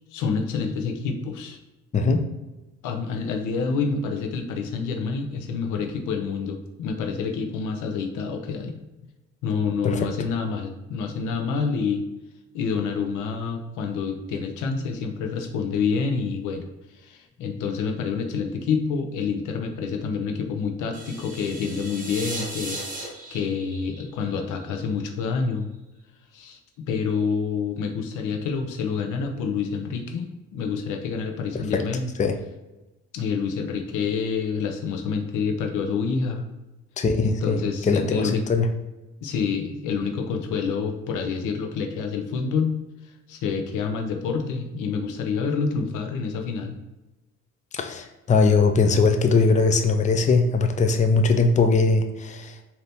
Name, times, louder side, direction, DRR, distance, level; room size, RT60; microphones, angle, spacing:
voice 1, 0.1-1.6 2.8-8.7 9.4-12.0 12.5-16.7 16.9-25.7 26.3-32.1 33.1-36.5 37.2-38.5 39.2-42.8 43.3-46.8, left 5 dB, 85° left, 5 dB, 0.6 m, -28 dB
voice 2, 1.9-2.3 9.8-10.1 31.7-31.8 32.2-32.4 37.0-37.6 37.9-38.7 47.7-52.6, left 4 dB, 25° left, 6 dB, 0.4 m, -20 dB
sound 1, 20.9-25.0, right 2 dB, 25° right, 1.2 m, -37 dB
4.0 x 2.8 x 3.4 m, 1.0 s
cardioid pair, 90°, 30 cm